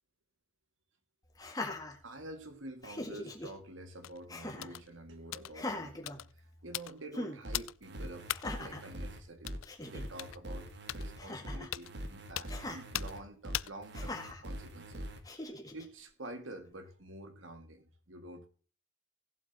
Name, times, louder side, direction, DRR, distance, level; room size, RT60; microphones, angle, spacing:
Laughter, 1.3-2.5 2.8-3.5 4.3-4.8 5.5-6.7 7.1-7.4 8.3-8.9 9.4-9.5 9.6-10.0 11.2-11.8 12.5-12.8 13.9-14.4 15.2-15.8, left 2 dB, 20° left, 1.7 m, -41 dB
voice 1, 2.0-8.3 8.6-15.5 15.7-18.5, right 1 dB, 75° right, 1.9 m, -48 dB
sound 1, 4.0-4.2 4.6-4.9 5.3-5.5 6.1-6.3 6.7-7.0 7.5-7.8 8.3-8.5 9.5-9.7 10.2-10.4 10.9-11.0 11.7-11.9 12.3-12.5 12.9-13.2 13.5-13.8 14.3-14.6, left 14 dB, 85° left, 0.4 m, -38 dB
sound 2, 7.4-15.2, equal, 60° right, 1.7 m, -43 dB
17.0 x 7.9 x 2.8 m
head